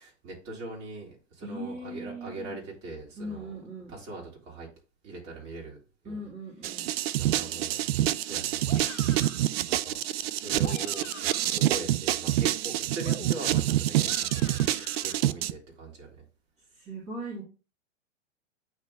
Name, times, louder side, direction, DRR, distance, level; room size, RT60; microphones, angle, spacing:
voice 1, 0.0-3.5 3.9-4.7 5.0-5.8 6.0-6.3 6.7-7.9 8.2-8.7 9.7-11.1 11.5-14.6 15.0-16.2, right 2 dB, 40° right, -2 dB, 3.6 m, -41 dB
voice 2, 1.4-2.6 3.2-3.9 6.0-6.9 16.8-17.4, right 1 dB, 20° right, -5 dB, 2.3 m, -39 dB
sound 1, 6.6-15.5, right 14 dB, 55° right, 0.5 m, -27 dB
sound 2, 8.6-9.5 10.4-11.6 13.0-15.2, left 9 dB, 80° left, 0.9 m, -46 dB
9.4 x 3.4 x 3.4 m, 0.33 s
hypercardioid pair, 120°, 36 cm